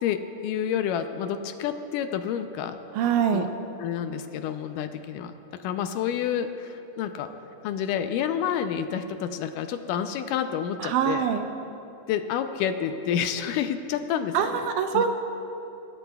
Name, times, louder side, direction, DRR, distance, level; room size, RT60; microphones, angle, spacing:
voice 1, 0.0-2.8 3.2-3.5 3.8-5.3 5.6-7.3 7.6-11.3 12.1-14.6 14.9-15.0, left 8 dB, 80° left, 8 dB, 2.1 m, -29 dB
voice 2, 2.9-3.5 10.8-11.5 14.3-15.1, right 7 dB, 75° right, 6 dB, 2.0 m, -24 dB
25.0 x 16.5 x 2.3 m, 3.0 s
omnidirectional pair, 3.9 m